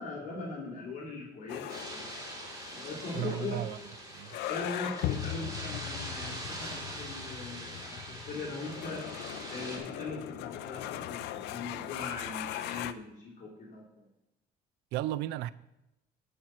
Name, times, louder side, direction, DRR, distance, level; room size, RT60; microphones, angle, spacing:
voice 1, 0.0-2.0 2.7-3.6 4.5-9.2 9.5-14.1, left 3 dB, 50° left, 2.7 m, -40 dB
sound 1, 1.5-12.9, left 13 dB, 85° left, 0.5 m, -40 dB
sound 2, 1.7-9.8, right 1 dB, 20° right, 2.9 m, -43 dB
voice 2, 3.1-3.8 4.1-4.4 14.9-15.5, right 14 dB, 85° right, 0.4 m, -34 dB
12.0 x 4.4 x 6.4 m
cardioid pair, 110°, 17 cm